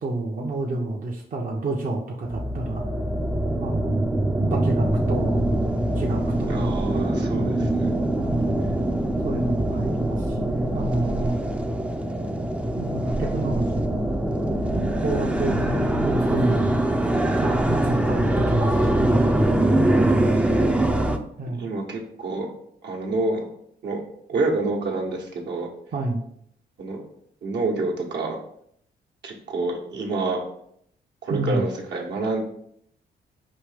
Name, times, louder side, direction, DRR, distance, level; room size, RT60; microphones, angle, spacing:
voice 1, 0.0-2.9 3.6-4.1 4.4-5.4 6.0-6.8 7.3-7.7 8.2-8.9 9.2-11.4 12.7-14.0 14.7-17.1 17.4-19.2 20.0-20.5 21.4-21.7 25.9-26.2 31.3-31.6, right 2 dB, 45° right, -1 dB, 0.7 m, -29 dB
sound 1, 2.2-21.2, right 1 dB, 5° right, 0.5 m, -23 dB
voice 2, 6.4-7.9 19.7-20.1 21.5-22.5 22.8-23.4 23.8-24.0 24.3-25.7 26.8-27.0 27.4-28.4 29.2-30.4 31.2-32.4, right 3 dB, 70° right, -1 dB, 1.1 m, -28 dB
5.1 x 2.7 x 3.4 m, 0.70 s
cardioid pair, 65°, 19 cm